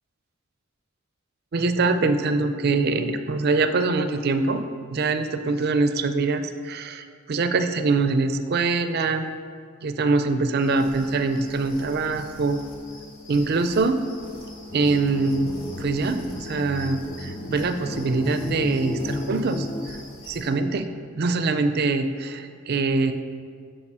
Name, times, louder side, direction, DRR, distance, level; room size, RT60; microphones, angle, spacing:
voice 1, 1.5-4.6 4.9-9.3 9.8-12.6 13.3-14.0 14.7-20.0 20.3-20.9 21.2-23.1, right 3 dB, 55° right, 9 dB, 0.5 m, -24 dB
sound 1, 10.6-20.5, left 2 dB, 80° left, 1.5 m, -42 dB
sound 2, 14.7-19.9, left 1 dB, 20° left, 0.3 m, -34 dB
7.3 x 5.1 x 5.5 m, 2.1 s
head